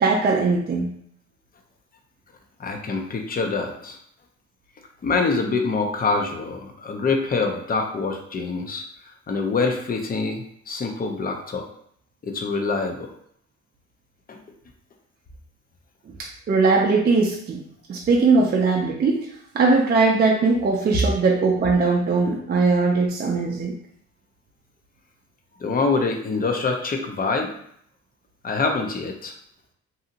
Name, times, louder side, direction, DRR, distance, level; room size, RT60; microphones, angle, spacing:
voice 1, 0.0-0.9 16.2-17.6 17.9-19.2 19.5-23.8, right 4 dB, 35° right, -1 dB, 0.4 m, -20 dB
voice 2, 2.6-4.0 5.0-8.8 9.3-11.7 12.2-13.1 14.3-14.4 25.6-27.5 28.4-29.3, left 4 dB, 30° left, 3 dB, 0.5 m, -25 dB
2.7 x 2.6 x 2.5 m, 0.66 s
cardioid pair, 90°, 30 cm